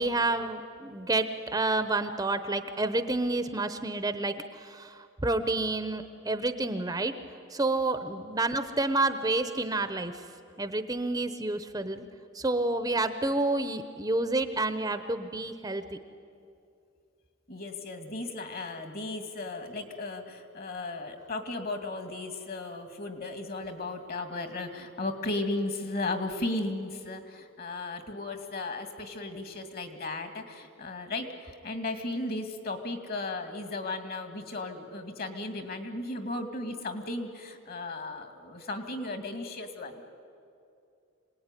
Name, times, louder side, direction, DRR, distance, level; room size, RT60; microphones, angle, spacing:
voice 1, 0.0-7.1 7.5-10.2 10.6-12.0 12.3-16.0, right 2 dB, 20° right, 10 dB, 0.8 m, -29 dB
voice 2, 17.5-40.0, left 2 dB, 45° left, 7 dB, 2.3 m, -35 dB
26.5 x 18.5 x 9.8 m, 2.5 s
head